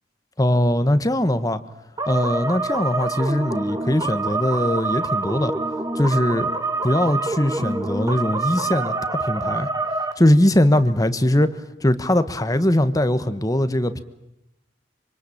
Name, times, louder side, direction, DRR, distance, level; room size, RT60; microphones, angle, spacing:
voice 1, 0.4-1.6 2.1-5.5 5.9-6.5 6.8-9.7 10.2-14.0, left 1 dB, 20° left, 12 dB, 1.3 m, -20 dB
sound 1, 2.0-10.1, right 3 dB, 20° right, 2.1 m, -26 dB
26.0 x 25.5 x 8.7 m, 0.90 s
head